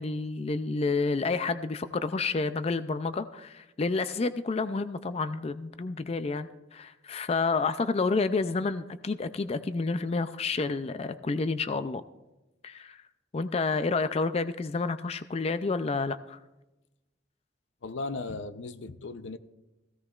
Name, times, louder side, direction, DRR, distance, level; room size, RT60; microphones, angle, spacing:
voice 1, 0.0-12.0 12.6-13.0 13.3-16.4, left 3 dB, 35° left, 0.4 m, -29 dB
voice 2, 17.8-19.4, left 3 dB, 85° left, 0.6 m, -36 dB
17.0 x 16.0 x 2.4 m
head